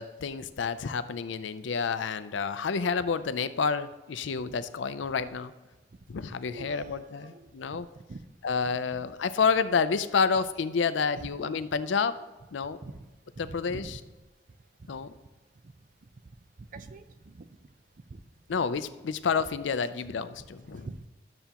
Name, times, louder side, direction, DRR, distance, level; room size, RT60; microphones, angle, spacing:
voice 1, 0.0-5.5 6.1-7.9 8.4-12.2 12.5-12.8 13.4-14.0 14.9-15.1 18.5-20.9, left 5 dB, 80° left, 13 dB, 0.5 m, -29 dB
voice 2, 6.5-7.8 8.1-8.2 8.7-8.8 12.8-13.1 13.4-14.0 16.6-17.5 18.1-18.2 20.7-21.1, right 3 dB, 45° right, 10 dB, 0.5 m, -44 dB
12.0 x 6.8 x 2.9 m, 1.2 s
head